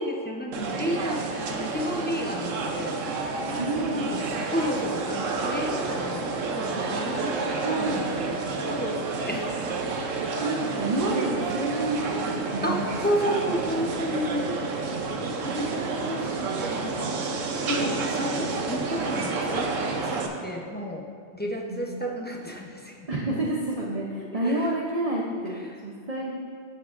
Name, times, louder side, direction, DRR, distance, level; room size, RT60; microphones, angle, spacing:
voice 1, 0.0-3.0 3.9-8.4 8.6-9.6 12.6-14.5 15.4-16.3 16.6-17.3 17.7-19.7 20.0-21.1 21.3-23.1 24.3-24.7 25.5-25.8, equal, 10° left, -1 dB, 0.6 m, -31 dB
sound 1, 0.5-20.3, right 4 dB, 75° right, 1.1 m, -30 dB
voice 2, 3.6-4.0 7.6-8.0 10.4-12.9 21.7-22.0 23.1-26.3, right 2 dB, 35° right, -2 dB, 0.7 m, -29 dB
14.5 x 6.5 x 2.6 m, 2.2 s
omnidirectional pair, 1.3 m